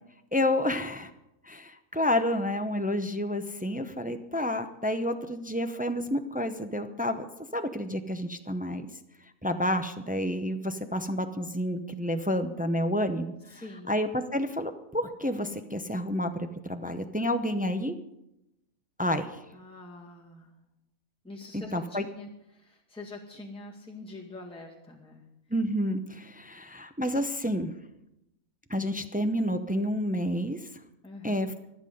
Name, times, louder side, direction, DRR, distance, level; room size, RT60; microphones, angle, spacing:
voice 1, 0.3-1.1 1.4-7.3 7.5-8.9 9.4-13.6 13.9-18.0 19.0-19.4 21.7-22.0 25.5-27.7 28.7-30.6 31.2-31.5, left 1 dB, 10° right, 7 dB, 0.4 m, -29 dB
voice 2, 13.5-14.0 19.5-20.6 21.2-25.2 31.0-31.4, left 2 dB, 5° left, -2 dB, 1.9 m, -45 dB
24.5 x 8.2 x 5.4 m, 0.85 s
omnidirectional pair, 1.5 m